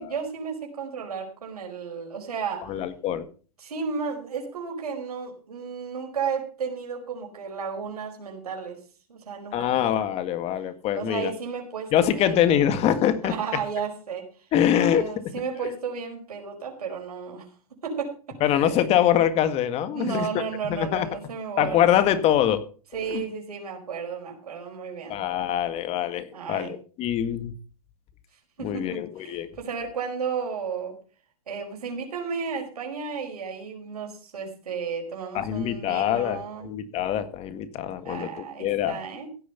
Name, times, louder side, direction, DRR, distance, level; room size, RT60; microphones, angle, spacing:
voice 1, 0.0-2.7 3.6-8.8 9.1-9.8 10.9-12.5 13.2-14.3 14.7-17.5 17.8-18.9 19.9-22.0 22.9-25.2 26.3-26.7 28.6-30.9 31.5-36.7 38.0-39.3, right 6 dB, 85° right, 2 dB, 5.0 m, -33 dB
voice 2, 2.7-3.3 9.5-11.3 11.9-13.3 14.5-15.1 18.4-20.3 20.6-21.1 21.6-22.6 23.1-23.2 25.1-27.5 28.6-29.5 35.3-38.3 38.6-38.9, left 10 dB, 35° left, 12 dB, 1.8 m, -24 dB
16.0 x 8.5 x 5.7 m, 0.39 s
hypercardioid pair, 120°, 19 cm